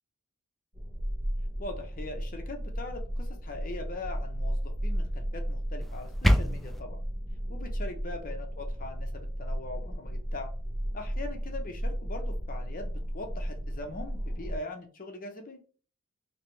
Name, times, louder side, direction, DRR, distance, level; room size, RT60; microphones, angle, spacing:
sound 1, 0.7-14.6, equal, 45° right, 1.2 m, -34 dB
voice 1, 1.6-7.0 7.5-10.5 10.9-15.6, left 2 dB, 40° left, 4 dB, 0.8 m, -41 dB
sound 2, 5.8-6.8, equal, ahead, 0.3 m, -25 dB
3.2 x 2.9 x 3.1 m, 0.39 s
head